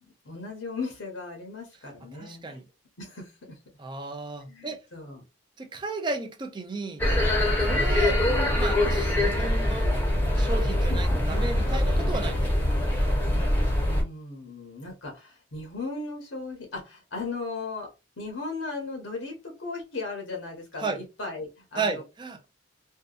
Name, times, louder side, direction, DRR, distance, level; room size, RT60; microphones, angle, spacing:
voice 1, 0.0-2.6 3.0-3.6 4.5-5.2 13.8-22.0, left 3 dB, 75° left, 0.9 m, -37 dB
voice 2, 2.1-2.6 3.8-4.8 5.6-7.1 7.6-8.2 8.6-9.9 10.4-12.4 20.8-21.0 21.8-22.5, right 3 dB, 25° right, 0.4 m, -34 dB
sound 1, 7.0-14.0, left 1 dB, 10° left, 0.8 m, -23 dB
2.6 x 2.2 x 2.3 m
head